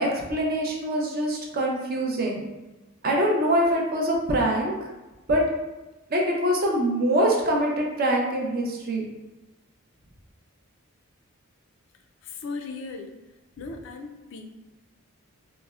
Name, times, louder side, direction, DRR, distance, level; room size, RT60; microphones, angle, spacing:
voice 1, 0.0-2.4 3.0-4.7 5.3-5.4 6.1-9.1, right 1 dB, 45° right, -1 dB, 0.5 m, -24 dB
voice 2, 12.2-13.2 13.6-14.5, left 3 dB, 55° left, 4 dB, 0.3 m, -37 dB
4.0 x 2.0 x 2.3 m, 1.1 s
head